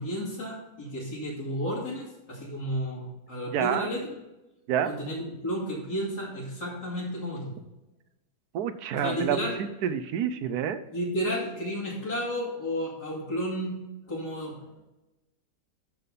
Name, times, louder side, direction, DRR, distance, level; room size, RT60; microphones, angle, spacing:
voice 1, 0.0-4.2 4.8-7.5 8.9-9.6 10.9-13.8 14.1-14.6, equal, 65° left, -7 dB, 2.8 m, -32 dB
voice 2, 3.5-3.9 4.7-4.9 8.5-9.4 9.8-10.8, right 9 dB, 70° right, 10 dB, 1.1 m, -28 dB
12.0 x 4.1 x 5.4 m, 0.98 s
omnidirectional pair, 1.8 m